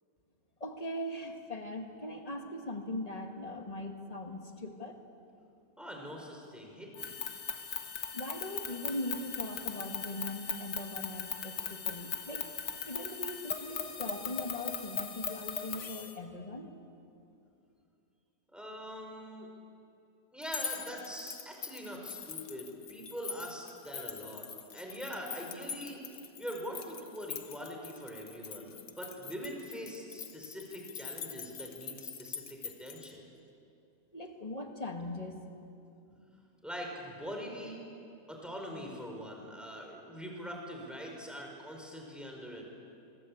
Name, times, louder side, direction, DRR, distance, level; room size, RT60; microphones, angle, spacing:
voice 1, 0.6-5.0 8.1-12.5 12.8-16.7 34.1-35.3, left 1 dB, 20° left, 3 dB, 2.0 m, -40 dB
voice 2, 5.8-7.1 18.5-19.5 20.3-24.4 24.7-26.0 26.4-33.2 36.1-36.2 36.6-37.8 38.3-42.7, equal, ahead, 0 dB, 4.9 m, -43 dB
sound 1, 6.9-16.1, left 6 dB, 80° left, 2.2 m, -39 dB
sound 2, 20.4-33.1, left 7 dB, 60° left, 1.5 m, -44 dB
26.0 x 21.0 x 8.7 m, 2.7 s
omnidirectional pair, 1.8 m